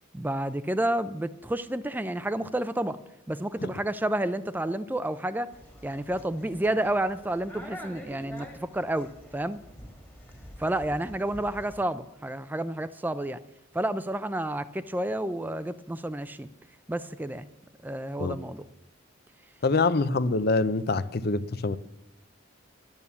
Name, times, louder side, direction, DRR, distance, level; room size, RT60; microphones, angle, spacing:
voice 1, 0.1-3.0 3.3-5.5 5.8-9.6 10.6-13.4 13.7-16.5 16.9-17.5 17.8-18.7, right 1 dB, 10° right, 0.4 m, -30 dB
sound 1, 5.5-11.8, equal, 10° left, 1.7 m, -46 dB
voice 2, 19.6-21.8, left 3 dB, 50° left, 0.6 m, -25 dB
11.0 x 10.5 x 7.0 m
head